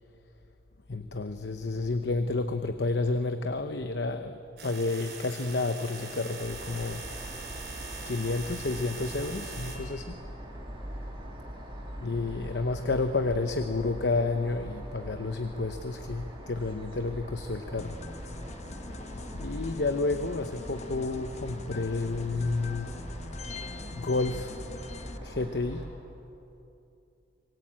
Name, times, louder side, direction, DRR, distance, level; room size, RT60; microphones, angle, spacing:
voice 1, 0.9-7.0 8.1-10.2 12.0-18.0 19.1-22.9 23.9-24.6 25.2-25.9, left 3 dB, 70° left, 8 dB, 0.9 m, -30 dB
sound 1, 4.6-9.8, right 4 dB, 65° right, 5.4 m, -42 dB
sound 2, 6.4-25.8, equal, 30° right, 5.4 m, -42 dB
sound 3, 17.8-25.2, left 3 dB, 40° left, 0.9 m, -43 dB
25.5 x 20.5 x 8.7 m, 2.8 s
head